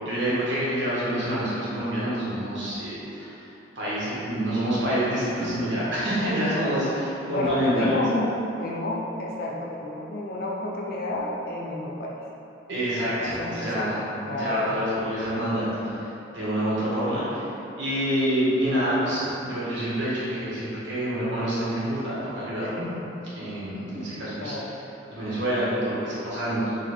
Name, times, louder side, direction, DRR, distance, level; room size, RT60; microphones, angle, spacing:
voice 1, 0.0-8.0 12.7-14.0 14.4-22.9 23.4-24.5 25.1-26.7, equal, 85° right, -9 dB, 1.5 m, -27 dB
voice 2, 7.3-8.3 8.6-12.2 13.2-14.7 24.4-24.7, left 2 dB, 55° left, -3 dB, 0.6 m, -30 dB
4.1 x 2.5 x 4.4 m, 2.9 s
head